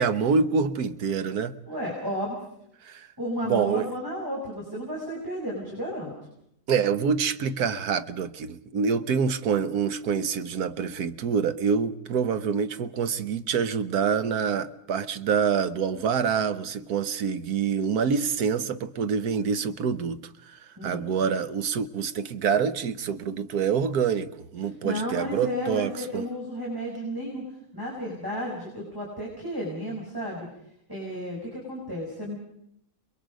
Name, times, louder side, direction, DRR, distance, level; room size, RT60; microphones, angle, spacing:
voice 1, 0.0-1.5 2.8-3.1 3.5-3.9 6.7-20.2 20.5-26.2, right 6 dB, 65° right, 1.5 m, -26 dB
voice 2, 1.7-2.4 3.2-6.1 20.8-21.1 24.8-27.4 27.7-30.5 30.9-32.4, equal, 10° right, 5.3 m, -33 dB
29.5 x 21.5 x 5.2 m
omnidirectional pair, 1.8 m